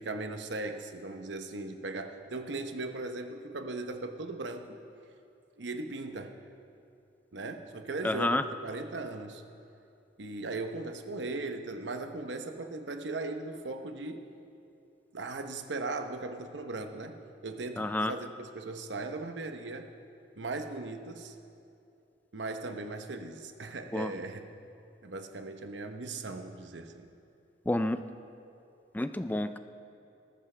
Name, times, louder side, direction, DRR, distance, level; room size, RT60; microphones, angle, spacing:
voice 1, 0.0-4.8 5.6-6.4 7.3-9.4 10.2-14.3 15.1-19.9 20.4-21.4 22.3-24.5 25.0-27.1, right 2 dB, 85° right, 6 dB, 0.9 m, -38 dB
voice 2, 8.0-8.4 17.8-18.1 23.9-24.1 27.7-28.0 28.9-29.6, left 1 dB, 10° left, 10 dB, 0.3 m, -29 dB
20.0 x 13.5 x 3.3 m, 2.6 s
head